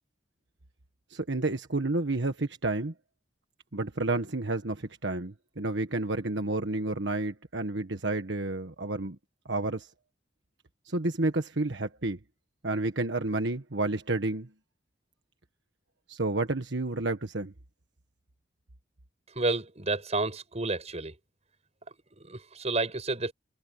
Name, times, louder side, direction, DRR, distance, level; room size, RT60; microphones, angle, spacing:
voice 1, 1.1-2.9 3.7-9.2 9.5-9.9 10.9-12.2 12.6-14.5 16.1-17.5, right 2 dB, 75° right, 1.5 m, -30 dB
voice 2, 19.3-21.1 22.2-23.3, right 3 dB, 40° right, 6.7 m, -30 dB
head